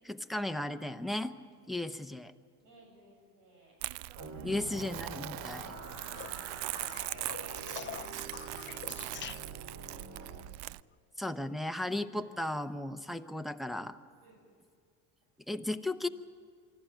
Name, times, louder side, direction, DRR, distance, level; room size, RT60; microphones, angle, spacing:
voice 1, 0.0-1.3 1.7-2.3 4.4-5.8 11.2-13.9 15.5-16.1, left 1 dB, ahead, 6 dB, 0.9 m, -35 dB
voice 2, 2.6-3.8 14.2-14.5 15.5-15.8, right 2 dB, 85° right, -1 dB, 7.9 m, -64 dB
Crumpling crinkling, 3.8-10.8, right 19 dB, 60° right, 0.5 m, -41 dB
sound 1, 4.2-10.4, right 3 dB, 35° right, 3.0 m, -46 dB
sound 2, 6.1-9.8 12.0-12.5 14.1-14.2, left 10 dB, 25° left, 0.4 m, -46 dB
24.5 x 13.5 x 9.2 m, 2.2 s
hypercardioid pair, 75°, 47 cm